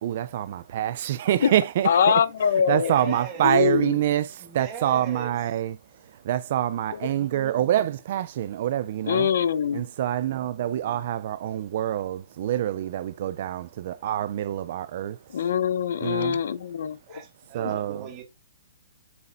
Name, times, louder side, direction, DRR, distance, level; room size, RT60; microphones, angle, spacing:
voice 1, 0.0-2.2 2.7-9.3 9.7-15.4 16.0-16.4 17.5-18.1, right 11 dB, 35° right, 0.5 m, -26 dB
voice 2, 1.8-3.1 3.4-4.0 9.1-9.8 15.3-17.0, left 7 dB, 55° left, 0.8 m, -23 dB
voice 3, 2.8-3.5 4.4-5.3 7.1-7.6 17.1-18.2, right 8 dB, 20° right, 1.9 m, -39 dB
8.5 x 6.9 x 2.6 m
hypercardioid pair, 175°, 0 cm